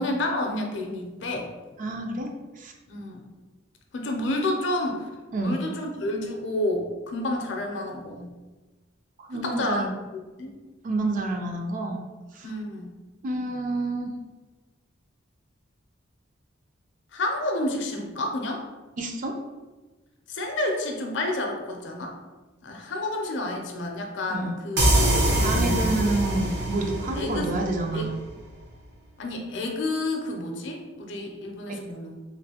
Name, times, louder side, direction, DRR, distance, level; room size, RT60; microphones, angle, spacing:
voice 1, 0.0-1.5 2.9-3.3 3.9-5.1 5.4-8.3 9.3-9.9 10.1-10.6 12.4-12.9 17.1-18.6 20.3-22.1 22.6-26.2 27.2-27.5 27.9-28.1 29.2-32.2, left 1 dB, 65° left, 2 dB, 0.5 m, -30 dB
voice 2, 1.8-2.3 2.6-2.7 5.3-5.7 9.2-10.0 10.8-12.1 12.3-12.5 13.2-14.1 19.0-19.3 24.3-24.6 25.4-28.2 31.7-31.8, right 2 dB, 40° right, 2 dB, 0.4 m, -28 dB
sound 1, 24.8-28.3, right 1 dB, 60° right, 0.8 m, -24 dB
3.1 x 2.5 x 2.8 m, 1.2 s
head